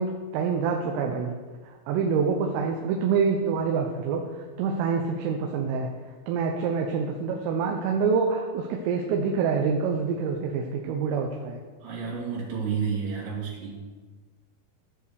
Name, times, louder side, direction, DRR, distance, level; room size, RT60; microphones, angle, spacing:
voice 1, 0.0-1.3 1.7-4.2 4.6-5.9 6.3-11.6, right 5 dB, 80° right, 2 dB, 3.4 m, -26 dB
voice 2, 11.8-13.8, right 6 dB, 65° right, -6 dB, 4.9 m, -30 dB
13.5 x 4.9 x 6.9 m, 1.4 s
omnidirectional pair, 5.9 m